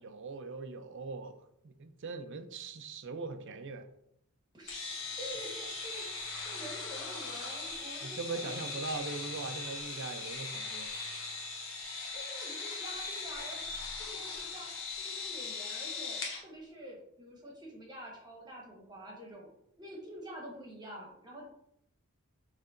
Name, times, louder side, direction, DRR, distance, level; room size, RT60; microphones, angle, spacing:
voice 1, 0.0-1.3 1.6-3.8 8.0-10.9, right 3 dB, 55° right, 8 dB, 0.5 m, -40 dB
voice 2, 4.5-6.1 6.4-8.8 12.1-13.6 14.0-21.5, right 1 dB, 20° right, -2 dB, 1.1 m, -47 dB
sound 1, 4.7-16.4, left 4 dB, 60° left, 1.0 m, -39 dB
6.5 x 3.3 x 2.5 m, 0.75 s
head